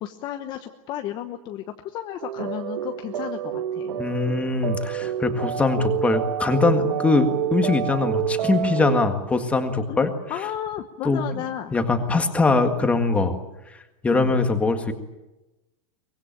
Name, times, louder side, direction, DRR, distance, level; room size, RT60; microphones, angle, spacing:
voice 1, 0.0-3.9 9.9-11.7 14.1-14.4, left 11 dB, 25° left, 6 dB, 1.0 m, -33 dB
sound 1, 2.2-9.1, right 11 dB, 85° right, 1.3 m, -28 dB
voice 2, 4.0-10.1 11.1-11.2 11.7-13.3 14.0-14.9, left 3 dB, 5° left, 6 dB, 1.8 m, -22 dB
24.0 x 22.0 x 9.1 m, 1.0 s
supercardioid pair, 180°, 17 cm